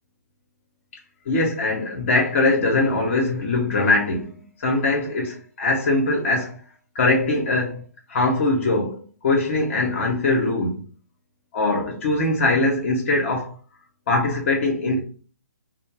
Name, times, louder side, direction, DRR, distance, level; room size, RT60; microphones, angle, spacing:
voice 1, 1.3-6.6 6.9-7.8 8.1-10.8 11.5-13.5 14.1-15.0, left 2 dB, 50° left, 0.7 m, -22 dB
2.6 x 2.0 x 3.1 m
figure-of-eight pair, 135°, 9 cm